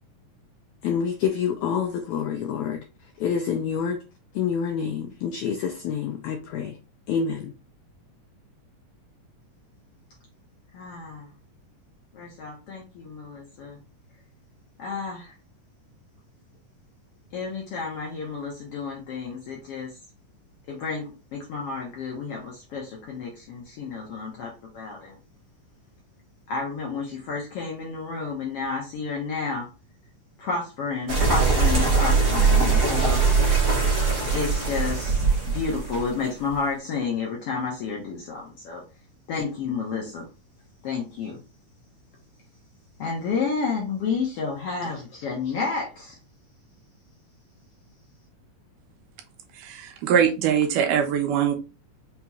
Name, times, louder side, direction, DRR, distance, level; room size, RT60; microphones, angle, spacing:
voice 1, 0.8-2.8 3.2-4.0 4.3-6.8 7.1-7.5, left 7 dB, 85° left, 1.6 m, -27 dB
voice 2, 10.7-11.3 12.1-13.8 14.8-15.3 17.3-19.9 20.7-25.2 26.5-29.7 30.4-33.2 34.3-38.8 39.3-40.3 40.8-41.4 43.0-46.2, left 5 dB, 70° left, 1.4 m, -31 dB
sound 1, 31.1-36.5, right 4 dB, 65° right, 0.9 m, -21 dB
voice 3, 49.6-51.5, right 8 dB, 85° right, 2.2 m, -22 dB
5.5 x 2.9 x 2.3 m
omnidirectional pair, 3.7 m